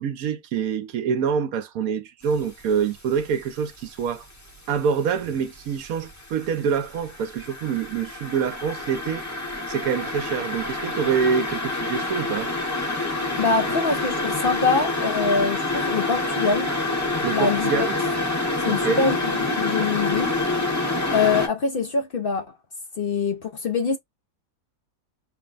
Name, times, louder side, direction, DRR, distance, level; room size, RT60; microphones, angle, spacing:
voice 1, 0.0-4.2 4.7-9.3 9.7-12.5 17.2-17.9 18.7-19.0, right 6 dB, 70° right, 1.0 m, -26 dB
sound 1, 2.4-2.8 3.2-4.7 5.1-21.5, left 2 dB, 15° left, 0.7 m, -27 dB
voice 2, 13.4-16.7 17.3-17.9 18.6-19.2 19.6-20.4 21.1-22.5 23.0-24.0, left 4 dB, 60° left, 0.6 m, -24 dB
4.5 x 2.1 x 3.9 m
omnidirectional pair, 1.6 m